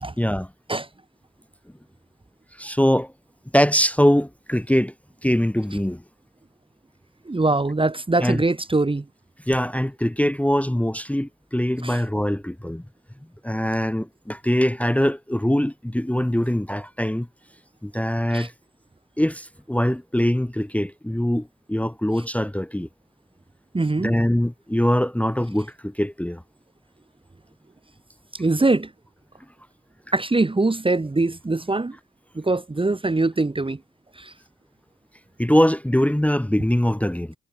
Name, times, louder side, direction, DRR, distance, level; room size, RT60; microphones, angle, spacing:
voice 1, 0.2-0.5 2.6-3.1 3.5-4.9 5.2-6.0 8.2-8.4 9.4-12.8 13.4-17.3 17.8-18.5 19.2-22.9 24.0-26.4 35.4-37.3, equal, 5° left, 1.4 m, -22 dB
voice 2, 7.3-9.0 11.8-11.9 18.3-18.5 23.7-24.1 28.4-28.9 30.1-32.0 32.3-33.8 34.2-34.3, right 2 dB, 15° right, 1.4 m, -22 dB
hypercardioid pair, 45°, 33 cm